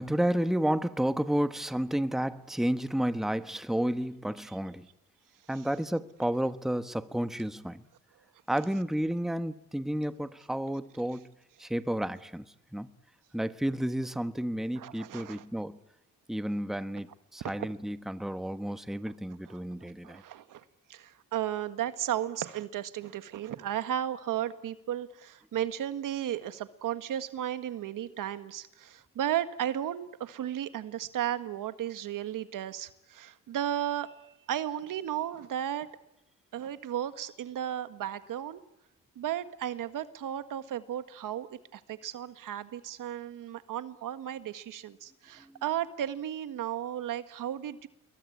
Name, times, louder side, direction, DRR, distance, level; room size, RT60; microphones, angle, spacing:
voice 1, 0.0-4.9 5.5-7.8 8.5-11.3 11.6-12.5 12.7-12.9 13.3-15.8 16.3-20.2, right 1 dB, ahead, 1.2 m, -31 dB
voice 2, 14.8-15.4 17.4-17.5 19.5-20.6 20.9-35.9 36.5-38.6 39.2-47.9, right 11 dB, 70° right, 1.7 m, -34 dB
27.0 x 22.5 x 8.6 m
cardioid pair, 95°, 33 cm